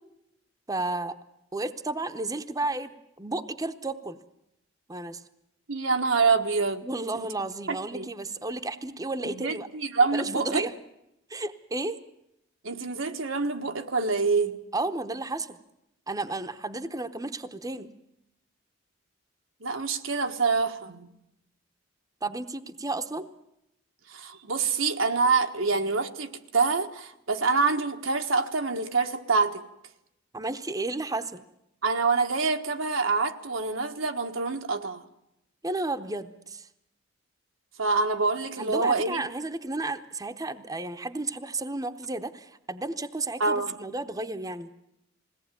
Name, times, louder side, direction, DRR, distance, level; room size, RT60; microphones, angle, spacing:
voice 1, 0.7-1.2 1.5-4.2 4.9-5.2 6.8-9.7 10.1-10.8 11.3-12.0 14.7-15.6 16.1-17.9 22.2-23.3 30.3-31.4 35.6-36.7 38.6-44.7, right 2 dB, 20° right, 8 dB, 0.8 m, -32 dB
voice 2, 5.7-6.8 7.1-7.3 7.7-8.1 9.2-10.6 12.6-14.6 19.6-21.1 24.1-29.6 31.8-35.0 37.8-39.2 43.4-43.7, right 4 dB, 90° right, 4 dB, 1.5 m, -26 dB
21.0 x 17.5 x 9.2 m, 0.84 s
head